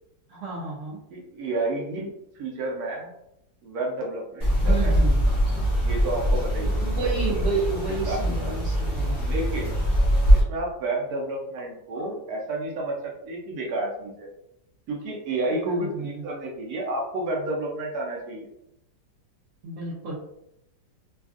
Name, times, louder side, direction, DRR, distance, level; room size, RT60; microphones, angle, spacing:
voice 1, 0.3-1.0 4.6-5.3 6.8-9.2 15.6-16.3 19.6-20.1, right 4 dB, 85° right, -4 dB, 0.6 m, -31 dB
voice 2, 1.1-3.1 3.6-5.0 5.8-6.8 8.1-8.5 9.2-9.7 10.3-14.3 14.9-18.5, right 2 dB, 65° right, -1 dB, 1.0 m, -31 dB
sound 1, 4.4-10.4, equal, 25° left, 0.7 m, -22 dB
3.4 x 2.4 x 2.3 m, 0.81 s
omnidirectional pair, 2.0 m